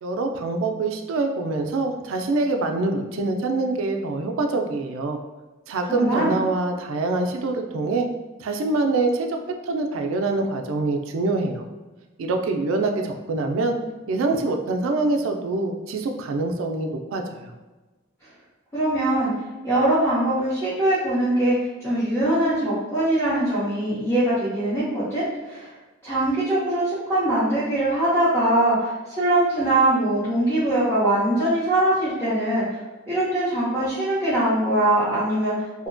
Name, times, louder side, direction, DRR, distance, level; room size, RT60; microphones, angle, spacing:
voice 1, 0.0-5.2 5.7-8.1 8.4-9.4 9.6-11.7 12.2-13.8 14.1-17.5, right 3 dB, 85° right, 4 dB, 0.3 m, -25 dB
voice 2, 5.9-6.4 18.7-19.3 19.6-25.7 26.0-32.6 33.1-35.9, right 1 dB, 10° left, -15 dB, 0.7 m, -22 dB
2.7 x 2.1 x 2.5 m, 1.2 s
head